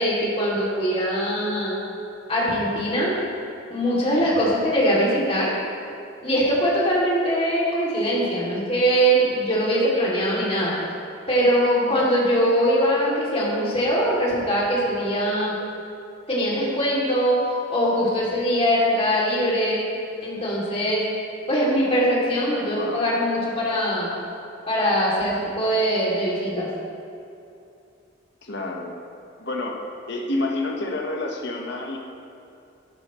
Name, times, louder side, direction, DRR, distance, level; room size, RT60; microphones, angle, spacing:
voice 1, 0.0-1.7 2.3-3.1 3.7-5.5 6.2-10.8 11.3-15.5 16.3-17.4 17.7-19.8 20.2-21.0 21.5-24.1 24.7-26.7, equal, 30° left, -6 dB, 2.7 m, -22 dB
voice 2, 4.0-4.3 11.8-12.0 22.7-23.0 28.4-29.0 29.5-29.8 30.1-32.0, left 2 dB, 65° left, 0 dB, 1.3 m, -29 dB
13.0 x 10.5 x 3.1 m, 2.6 s
head